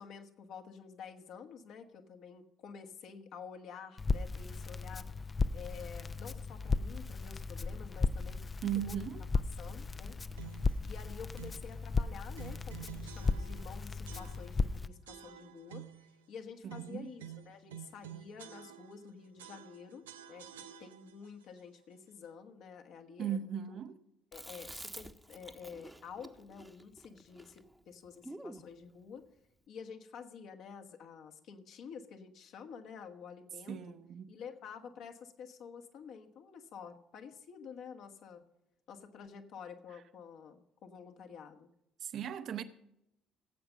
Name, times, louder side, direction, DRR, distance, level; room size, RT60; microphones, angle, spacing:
voice 1, 0.0-5.1 5.5-8.4 8.7-9.0 9.3-10.2 10.8-15.9 16.3-23.8 24.3-29.3 29.7-34.0 34.3-38.5 38.9-41.7, left 6 dB, 55° left, 1.4 m, -49 dB
Crackle, 4.0-14.9, left 4 dB, 30° left, 0.6 m, -35 dB
voice 2, 8.6-9.2 16.6-17.1 23.2-24.0 33.7-34.3 42.0-42.6, right 9 dB, 50° right, 0.9 m, -37 dB
sound 1, 10.4-10.8 11.4-11.7 12.4-13.7 14.1-14.7 15.1-16.1 16.7-19.1 19.4-21.3, right 10 dB, 75° right, 0.5 m, -50 dB
Chewing mastication, 24.3-28.7, right 1 dB, 10° right, 1.1 m, -49 dB
17.5 x 8.0 x 5.6 m
figure-of-eight pair, 50°, 0 cm